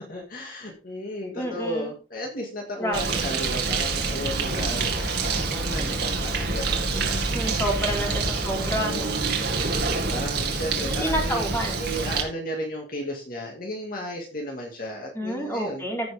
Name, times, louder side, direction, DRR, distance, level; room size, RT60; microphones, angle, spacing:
voice 1, 0.1-7.5 7.9-9.2 9.8-11.5 11.8-15.8, equal, 45° left, 0 dB, 2.2 m, -34 dB
voice 2, 1.3-1.9 2.8-3.2 7.3-9.2 11.0-11.8 15.1-16.1, equal, 10° left, -1 dB, 3.9 m, -29 dB
Bird, 2.9-12.2, right 4 dB, 55° right, 2.2 m, -27 dB
sound 1, 4.3-9.4, left 1 dB, 85° left, 2.2 m, -37 dB
15.5 x 6.1 x 3.6 m, 0.34 s
head